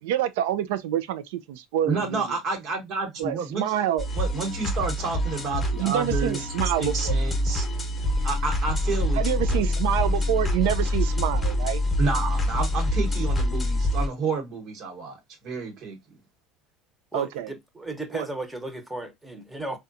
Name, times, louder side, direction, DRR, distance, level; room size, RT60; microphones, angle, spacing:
voice 1, 0.0-2.3 3.2-4.0 5.8-7.1 9.2-11.8 17.1-17.5 18.1-18.3, right 11 dB, 80° right, 0.4 m, -27 dB
voice 2, 1.8-3.6 4.1-6.4 6.8-7.9 8.2-9.6 12.0-16.0, right 4 dB, 60° right, 1.3 m, -30 dB
sound 1, 4.0-14.1, left 1 dB, 20° left, 0.9 m, -25 dB
voice 3, 17.1-19.8, right 2 dB, 10° right, 0.9 m, -35 dB
3.6 x 2.3 x 2.6 m
supercardioid pair, 90°, 0 cm